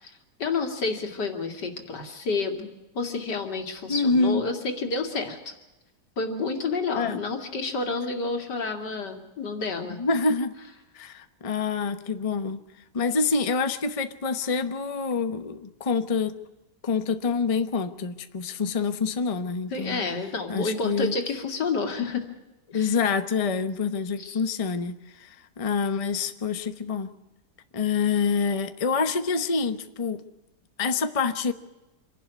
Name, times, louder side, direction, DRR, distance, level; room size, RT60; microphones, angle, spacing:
voice 1, 0.0-5.6 6.2-10.0 19.7-22.2 22.7-22.9 24.2-24.4, left 4 dB, 85° left, 3.0 m, -30 dB
voice 2, 3.9-4.4 7.0-7.2 10.0-10.5 10.9-12.6 12.9-16.3 16.8-20.1 20.5-21.1 22.7-27.1 27.7-30.2 30.8-31.5, left 4 dB, 25° left, 0.9 m, -26 dB
26.0 x 11.5 x 9.5 m
omnidirectional pair, 1.8 m